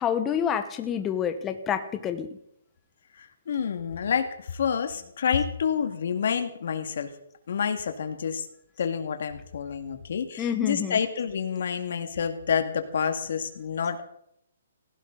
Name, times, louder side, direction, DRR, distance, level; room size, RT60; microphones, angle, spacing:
voice 1, 0.0-2.3 10.4-11.0, left 8 dB, 15° left, 8 dB, 1.1 m, -28 dB
voice 2, 3.2-7.1 7.5-8.5 8.8-14.0, left 7 dB, 60° left, 7 dB, 2.0 m, -28 dB
17.0 x 16.0 x 4.0 m, 0.74 s
hypercardioid pair, 165°, 0 cm